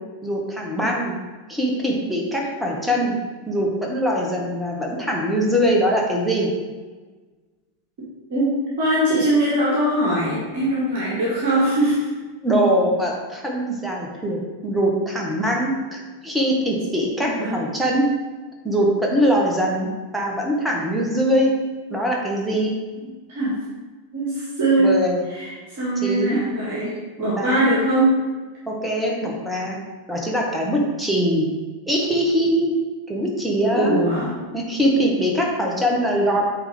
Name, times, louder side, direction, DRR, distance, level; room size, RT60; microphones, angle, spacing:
voice 1, 0.2-1.2 1.5-3.1 3.5-6.5 12.4-18.1 18.6-21.5 21.9-22.7 24.8-25.2 26.0-26.4 27.4-27.7 28.7-29.8 30.1-31.5 31.9-32.7 33.1-34.0 34.5-36.5, equal, 5° right, -1 dB, 1.4 m, -22 dB
voice 2, 8.3-12.0 17.2-17.7 23.3-23.6 24.1-25.0 25.3-28.1 33.7-34.3, right 1 dB, 50° right, -5 dB, 1.7 m, -21 dB
8.8 x 3.8 x 3.3 m, 1.3 s
figure-of-eight pair, 85°, 0 cm